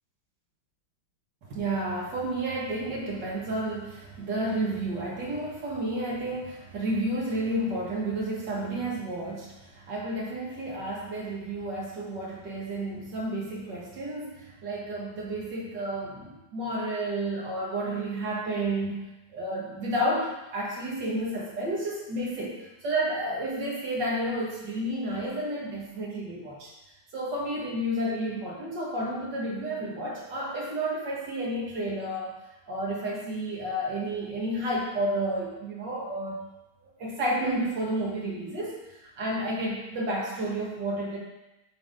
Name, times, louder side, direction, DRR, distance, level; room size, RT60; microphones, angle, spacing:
voice 1, 1.5-19.0 19.3-26.7 27.1-32.4 32.7-36.4 37.0-38.8 39.2-41.2, right 1 dB, 65° right, -5 dB, 2.1 m, -31 dB
9.8 x 3.7 x 3.8 m, 0.99 s
omnidirectional pair, 2.1 m